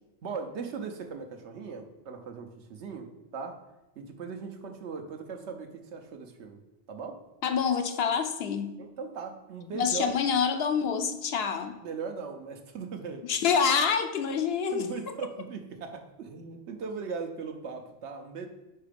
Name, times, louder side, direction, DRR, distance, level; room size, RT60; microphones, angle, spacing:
voice 1, 0.2-3.6 4.0-6.6 6.9-7.2 8.8-10.2 11.8-13.3 14.7-18.5, right 5 dB, 75° right, 5 dB, 1.1 m, -39 dB
voice 2, 7.4-8.7 9.7-11.7 13.2-15.2, left 6 dB, 65° left, 8 dB, 0.8 m, -27 dB
4.8 x 4.5 x 5.0 m, 1.0 s
omnidirectional pair, 1.2 m